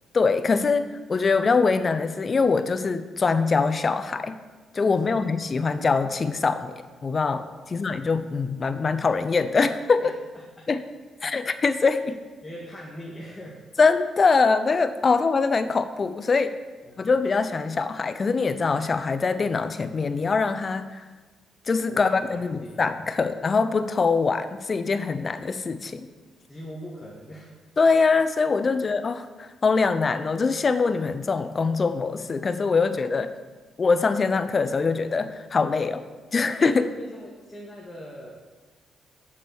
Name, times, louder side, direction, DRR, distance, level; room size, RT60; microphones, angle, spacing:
voice 1, 0.1-4.4 4.7-7.4 7.7-10.1 10.7-10.8 11.2-12.2 13.8-16.6 17.0-21.0 21.7-26.1 27.8-33.3 33.8-36.0 36.3-36.9, left 4 dB, 35° left, 11 dB, 0.6 m, -23 dB
voice 2, 7.7-8.0 10.0-10.7 11.2-11.4 12.0-12.1 12.4-13.7 15.1-15.2 16.8-17.1 21.9-22.8 23.2-23.3 26.5-27.6 28.7-28.9 32.9-33.3 36.7-38.3, equal, 15° left, -4 dB, 1.7 m, -42 dB
7.2 x 6.4 x 7.0 m, 1.3 s
cardioid pair, 95°, 0 cm